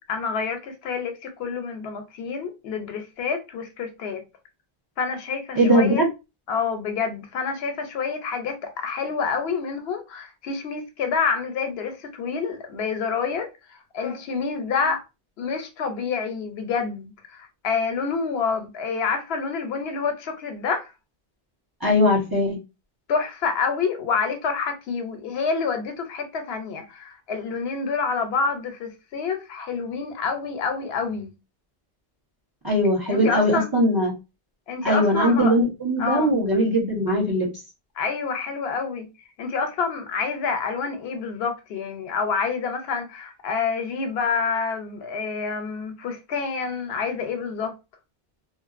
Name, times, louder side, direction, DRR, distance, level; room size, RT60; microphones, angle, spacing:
voice 1, 0.1-4.2 5.0-6.0 6.5-15.0 15.4-20.9 23.1-31.3 33.1-33.7 34.7-35.6 36.0-36.3 38.0-39.1 39.4-47.7, left 5 dB, 80° left, 0.8 m, -28 dB
voice 2, 5.6-6.1 21.8-22.6 32.6-34.1 34.8-37.5, equal, 25° right, 0.9 m, -20 dB
2.5 x 2.0 x 2.4 m
omnidirectional pair, 1.0 m